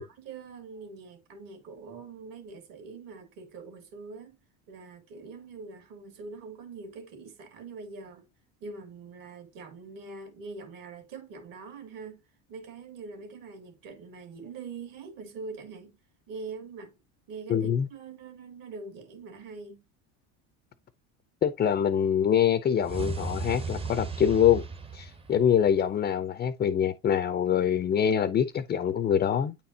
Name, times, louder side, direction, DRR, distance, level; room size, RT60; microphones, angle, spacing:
voice 1, 0.0-4.4 4.7-8.2 8.6-12.2 12.5-16.0 16.3-17.0 17.3-19.8, right 4 dB, 60° right, 2.1 m, -43 dB
voice 2, 17.5-17.9 21.4-24.6 24.9-29.5, left 9 dB, 25° left, 0.4 m, -24 dB
sound 1, 22.8-26.0, right 4 dB, 15° right, 0.6 m, -36 dB
8.7 x 4.3 x 2.7 m
supercardioid pair, 105°, 37 cm